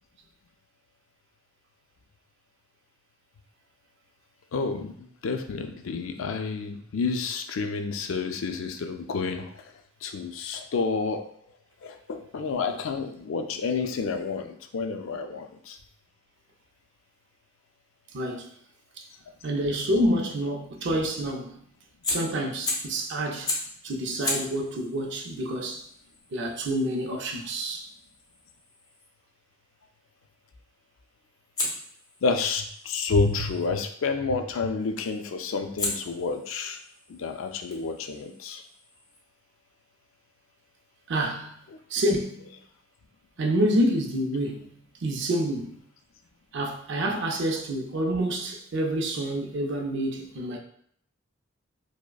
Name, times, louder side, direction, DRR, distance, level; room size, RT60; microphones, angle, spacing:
voice 1, 4.5-9.7 10.0-11.2 11.8-15.8 32.2-36.8 37.1-38.6, left 4 dB, 75° left, 0.4 m, -29 dB
voice 2, 18.1-18.5 19.0-19.1 19.4-21.6 22.1-23.5 23.8-25.8 26.3-27.9 41.1-41.5 41.9-42.5 43.4-45.8 46.5-50.6, right 1 dB, 60° right, 0.5 m, -28 dB
Fire, 22.0-23.0 23.4-23.8 24.2-29.1 31.5-33.7 35.0-35.3 35.8-39.2, left 2 dB, 20° left, 0.7 m, -36 dB
4.8 x 2.1 x 2.3 m
head